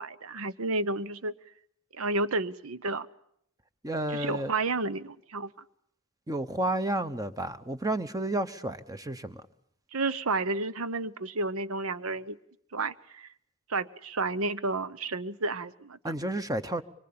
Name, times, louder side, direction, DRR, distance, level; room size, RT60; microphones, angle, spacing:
voice 1, 0.0-1.3 1.9-3.1 4.1-5.5 9.9-12.4 12.7-13.3 13.7-16.0, right 3 dB, 70° right, 1.0 m, -31 dB
voice 2, 3.8-4.5 6.3-9.4 16.0-16.8, right 1 dB, 15° right, 1.0 m, -31 dB
24.5 x 23.5 x 8.7 m
head